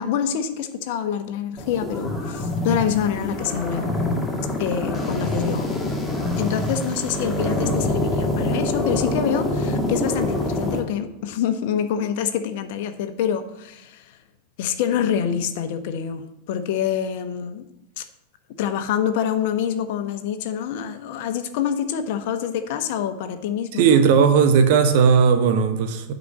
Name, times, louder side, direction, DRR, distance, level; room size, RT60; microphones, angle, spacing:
voice 1, 0.0-3.9 4.6-5.7 6.4-14.1 14.6-17.6 18.0-18.1 18.6-24.1, left 8 dB, 50° left, 9 dB, 1.1 m, -26 dB
sound 1, 1.6-10.8, left 1 dB, 5° left, 2.0 m, -25 dB
voice 2, 23.7-26.1, right 6 dB, 50° right, 8 dB, 1.0 m, -16 dB
9.6 x 5.3 x 7.2 m, 0.83 s
figure-of-eight pair, 90°, 0 cm